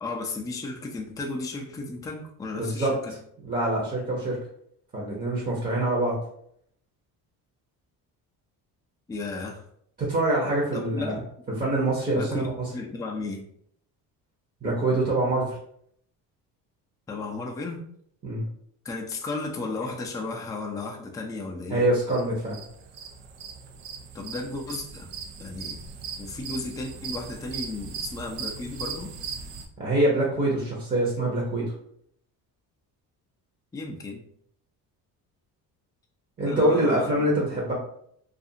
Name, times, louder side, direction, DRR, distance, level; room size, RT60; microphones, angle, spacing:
voice 1, 0.0-3.2 9.1-9.6 10.7-11.2 12.1-13.5 17.1-17.8 18.8-21.8 24.1-25.1 25.4-25.8 26.2-29.1 33.7-34.2 36.4-37.3, left 3 dB, 10° left, 0 dB, 0.4 m, -34 dB
voice 2, 2.5-2.9 3.5-4.4 4.9-6.2 10.0-11.2 11.6-12.7 14.6-15.6 18.2-18.4 21.7-22.6 29.8-31.7 36.4-37.7, right 1 dB, 25° right, -4 dB, 0.8 m, -25 dB
sound 1, 22.1-29.7, right 6 dB, 85° right, 0.6 m, -38 dB
2.5 x 2.4 x 2.7 m, 0.68 s
cardioid pair, 95°, 39 cm